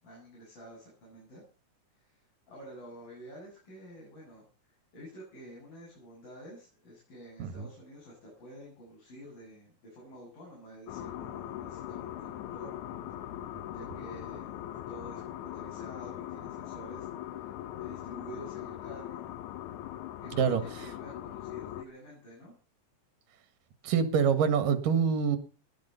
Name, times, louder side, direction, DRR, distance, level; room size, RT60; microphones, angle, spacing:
voice 1, 0.0-1.4 2.0-12.8 13.7-14.6 14.9-19.3 20.2-22.5, right 1 dB, 90° left, -4 dB, 9.3 m, -49 dB
sound 1, 10.9-21.8, left 12 dB, 70° left, 2.3 m, -40 dB
voice 2, 20.3-20.6 23.8-25.4, right 7 dB, 75° right, 11 dB, 3.2 m, -26 dB
19.0 x 11.5 x 5.6 m, 0.39 s
omnidirectional pair, 3.8 m